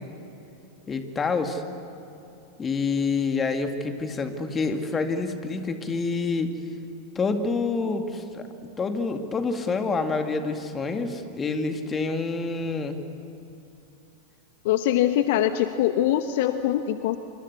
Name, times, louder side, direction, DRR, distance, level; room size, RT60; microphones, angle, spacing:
voice 1, 0.9-1.6 2.6-6.5 7.2-8.5 8.8-13.0, left 4 dB, 20° left, 6 dB, 2.2 m, -27 dB
voice 2, 14.6-17.2, left 12 dB, 50° left, 10 dB, 0.9 m, -23 dB
26.5 x 24.5 x 8.3 m, 2.8 s
figure-of-eight pair, 90°, 0 cm